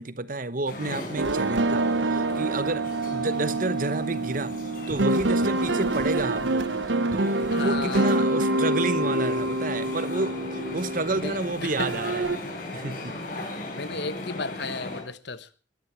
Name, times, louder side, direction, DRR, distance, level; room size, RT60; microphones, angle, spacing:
voice 1, 0.0-2.8 3.1-4.6 4.9-6.7 7.1-12.3 12.7-13.1, right 2 dB, 45° right, 1.1 m, -30 dB
sound 1, 0.7-15.0, left 2 dB, 45° left, 5.7 m, -38 dB
sound 2, 1.2-11.5 11.8-12.4, right 2 dB, 75° right, 0.9 m, -26 dB
voice 2, 7.5-8.1 11.1-11.9 13.7-15.5, left 4 dB, 65° left, 1.2 m, -34 dB
21.0 x 14.0 x 4.6 m
head